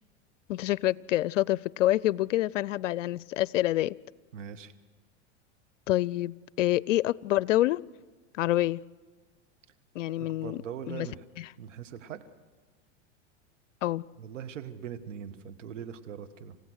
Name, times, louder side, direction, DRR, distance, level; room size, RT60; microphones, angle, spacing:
voice 1, 0.5-4.0 5.9-7.8 8.3-8.8 9.9-10.6 10.9-11.1 11.4-11.5 13.8-14.0, left 15 dB, 85° left, 23 dB, 0.5 m, -27 dB
voice 2, 4.3-4.7 10.4-11.2 11.6-12.3 14.2-16.6, right 8 dB, 85° right, 9 dB, 1.6 m, -41 dB
28.5 x 16.0 x 6.4 m, 1.4 s
hypercardioid pair, 105°, 36 cm